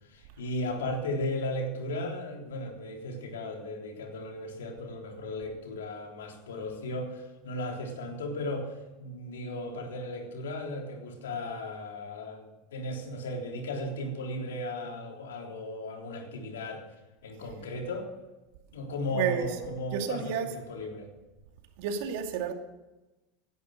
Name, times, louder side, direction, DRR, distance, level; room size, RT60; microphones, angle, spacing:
voice 1, 0.0-16.8 17.2-18.1 18.7-21.1, left 1 dB, 90° left, 3.5 m, -36 dB
voice 2, 19.1-19.5 19.9-20.5 21.8-22.5, right 7 dB, 70° right, 2.4 m, -31 dB
17.0 x 11.0 x 6.5 m
hypercardioid pair, 95°, 0 cm